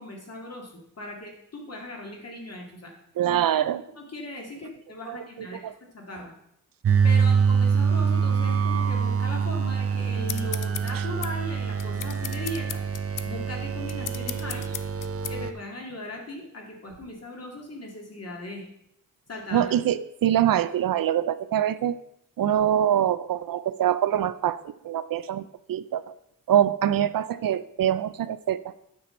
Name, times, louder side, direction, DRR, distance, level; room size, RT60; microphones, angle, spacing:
voice 1, 0.0-2.9 3.3-6.3 7.0-12.9 13.3-14.6 15.3-18.7 19.3-19.7, left 1 dB, 50° left, 0 dB, 2.1 m, -38 dB
voice 2, 3.2-3.8 5.1-5.7 10.9-11.0 19.5-22.0 22.4-26.1 26.5-28.7, right 10 dB, 85° right, 15 dB, 0.5 m, -24 dB
sound 1, 6.8-15.5, right 6 dB, 45° right, 0.6 m, -25 dB
sound 2, 10.3-15.4, left 9 dB, 70° left, 0.5 m, -37 dB
9.6 x 6.8 x 4.3 m, 0.76 s
wide cardioid pair, 175°, 33 cm